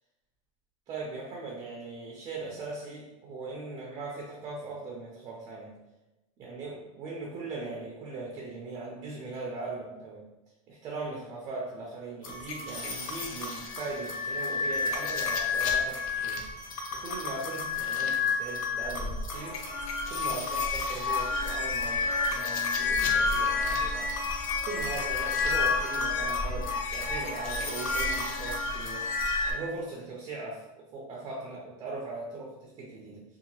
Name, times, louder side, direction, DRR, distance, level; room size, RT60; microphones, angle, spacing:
voice 1, 0.9-5.7 6.4-10.3 10.7-16.4 16.9-19.6 20.1-24.2 24.6-29.1 29.5-33.2, right 3 dB, 25° right, -2 dB, 0.4 m, -39 dB
sound 1, 12.2-29.5, left 4 dB, 85° left, 0.6 m, -30 dB
2.7 x 2.2 x 2.8 m, 1.0 s
supercardioid pair, 160°, 17 cm